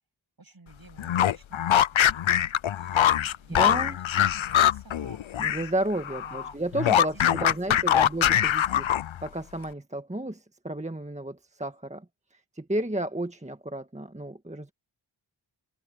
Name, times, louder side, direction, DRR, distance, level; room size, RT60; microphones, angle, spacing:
voice 1, 0.4-2.5 2.7-5.2 6.1-6.6 7.0-7.5 7.9-8.0, right 3 dB, 45° right, 7.6 m, -50 dB
sound 1, 1.0-5.7 6.0-9.3, left 11 dB, 75° left, 0.7 m, -23 dB
voice 2, 3.5-4.0 5.4-8.9 9.2-12.0 12.5-14.7, right 1 dB, 15° right, 1.6 m, -32 dB
open air
cardioid pair, 50°, 48 cm